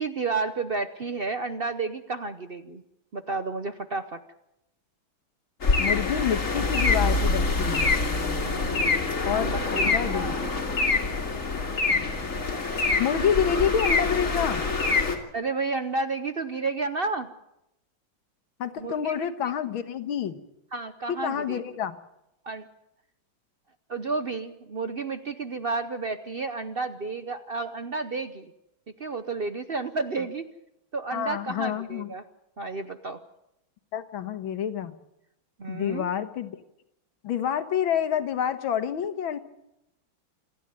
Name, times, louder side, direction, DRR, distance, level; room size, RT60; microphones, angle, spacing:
voice 1, 0.0-2.8 3.1-4.2 8.4-8.8 9.3-9.9 10.1-10.6 15.3-17.3 18.8-19.2 20.7-21.6 22.4-22.7 23.9-28.5 29.0-30.4 30.9-32.2 32.6-33.2 35.6-36.1, right 3 dB, 65° right, 10 dB, 0.5 m, -31 dB
sound 1, 5.6-15.2, left 3 dB, 40° left, 2.6 m, -25 dB
voice 2, 5.8-8.0 9.3-10.4 13.0-14.6 18.6-20.4 21.1-22.0 31.1-32.1 33.9-35.0 35.7-36.6 37.2-39.4, left 8 dB, 85° left, 11 dB, 2.0 m, -28 dB
28.0 x 10.0 x 9.4 m, 0.85 s
omnidirectional pair, 2.2 m